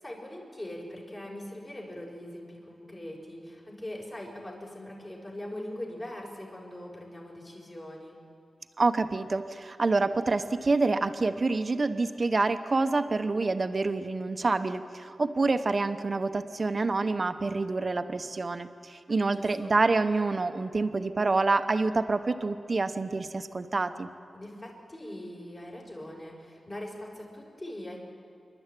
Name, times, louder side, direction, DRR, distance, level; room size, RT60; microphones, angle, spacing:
voice 1, 0.0-8.2 19.3-19.7 24.3-28.0, left 1 dB, 30° left, -3 dB, 5.4 m, -41 dB
voice 2, 8.8-24.1, right 3 dB, 45° right, 10 dB, 1.0 m, -27 dB
26.5 x 12.0 x 9.1 m, 2.5 s
wide cardioid pair, 85°, 0 cm